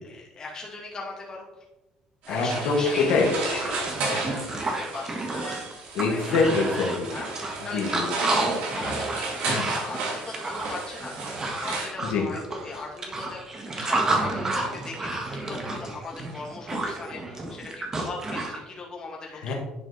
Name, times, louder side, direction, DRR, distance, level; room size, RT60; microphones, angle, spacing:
voice 1, 0.0-1.5 2.3-5.1 5.4-5.5 6.1-6.4 7.1-8.0 8.7-11.1 11.5-19.5, left 3 dB, 30° left, -2 dB, 2.4 m, -39 dB
sound 1, 2.2-11.9, right 3 dB, 75° right, 2.8 m, -33 dB
voice 2, 2.3-3.3 6.0-7.1 7.7-8.1 9.4-9.6 12.1-12.2 19.4-19.5, left 4 dB, 85° left, 0 dB, 1.7 m, -24 dB
sound 2, 2.9-3.0 3.3-18.6, right 2 dB, 25° right, 1.6 m, -31 dB
10.5 x 4.9 x 4.0 m, 0.99 s
cardioid pair, 120°, 2 cm